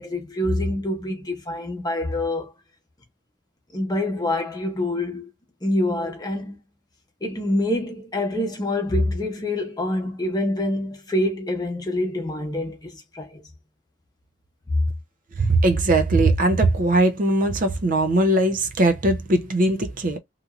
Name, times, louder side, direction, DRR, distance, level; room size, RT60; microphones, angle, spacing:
voice 1, 0.0-2.5 3.7-5.3 5.6-6.6 7.2-13.4 14.7-14.8, left 1 dB, 20° left, 0.9 m, -26 dB
voice 2, 15.4-20.2, right 2 dB, 45° right, 0.5 m, -20 dB
2.9 x 2.5 x 2.4 m
head